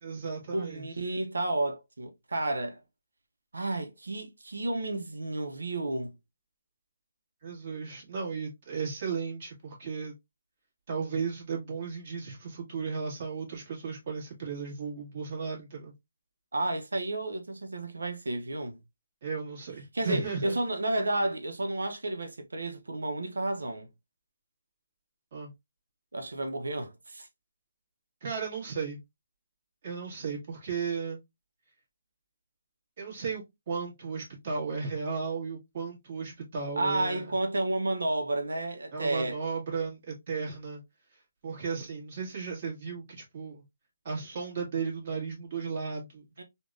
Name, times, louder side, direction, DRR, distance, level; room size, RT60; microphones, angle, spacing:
voice 1, 0.0-0.9 7.4-10.1 10.9-15.9 19.2-20.5 25.3-25.5 28.2-29.0 29.8-31.2 33.0-37.3 38.9-40.8 41.4-43.6 44.0-46.2, right 5 dB, 35° right, 1.4 m, -35 dB
voice 2, 0.5-2.8 3.5-6.1 16.5-18.8 19.9-23.9 26.1-27.3 36.8-39.4 46.4-46.5, right 2 dB, 90° right, 0.6 m, -31 dB
3.4 x 2.1 x 2.4 m
hypercardioid pair, 165°, 0 cm